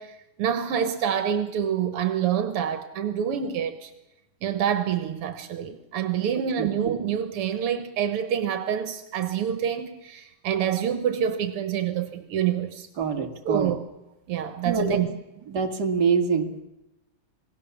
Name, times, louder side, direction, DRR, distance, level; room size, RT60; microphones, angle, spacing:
voice 1, 0.0-3.9 4.4-12.9 13.5-13.8 14.3-15.1, right 9 dB, 85° right, 2.1 m, -27 dB
voice 2, 13.0-13.7 14.6-15.0 15.5-16.6, right 5 dB, 50° right, 2.5 m, -25 dB
27.5 x 20.0 x 7.2 m
omnidirectional pair, 2.4 m